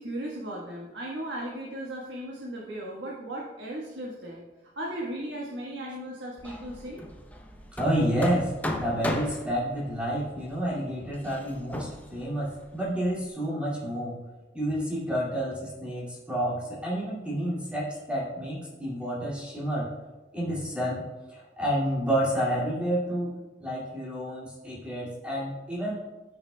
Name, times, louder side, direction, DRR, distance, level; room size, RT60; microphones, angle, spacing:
voice 1, 0.0-7.0, right 1 dB, 90° right, -4 dB, 1.3 m, -36 dB
Hammer, 6.4-13.3, left 1 dB, 10° left, 0.6 m, -38 dB
voice 2, 7.8-14.2 14.5-19.9 20.3-21.0 21.3-23.3 23.6-26.0, equal, 5° right, -7 dB, 2.2 m, -29 dB
14.0 x 5.9 x 2.2 m, 1.1 s
head